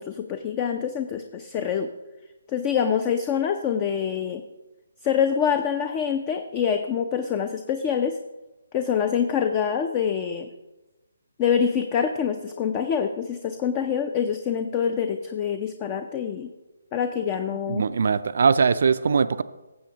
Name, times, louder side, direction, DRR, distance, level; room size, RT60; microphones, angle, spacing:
voice 1, 0.0-1.9 2.5-4.4 5.0-8.2 8.7-10.5 11.4-16.5 16.9-17.9, left 7 dB, 25° left, 8 dB, 0.6 m, -25 dB
voice 2, 17.7-19.4, right 5 dB, 55° right, 13 dB, 0.4 m, -21 dB
16.0 x 7.6 x 2.9 m, 1.1 s
figure-of-eight pair, 145°, 0 cm